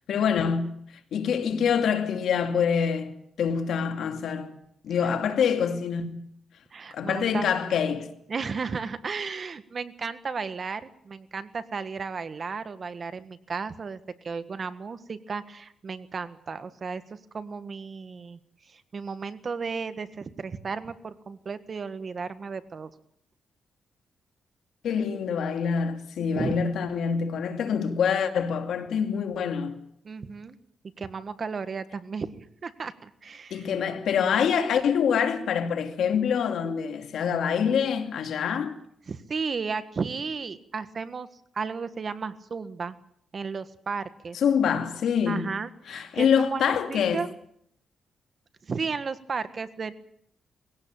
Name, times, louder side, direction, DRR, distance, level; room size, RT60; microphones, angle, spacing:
voice 1, 0.1-0.7 1.1-4.6 4.8-6.3 6.9-8.1 24.8-29.8 33.5-38.8 44.3-45.5 45.9-47.2, left 7 dB, 80° left, 2.5 m, -25 dB
voice 2, 6.7-7.5 8.3-18.4 18.7-22.9 26.2-26.6 30.0-30.6 31.0-33.7 39.1-41.3 41.5-42.9 43.3-44.4 45.3-47.3 48.6-49.9, right 5 dB, 40° right, 1.6 m, -34 dB
21.0 x 17.0 x 8.9 m
cardioid pair, 110°, 0 cm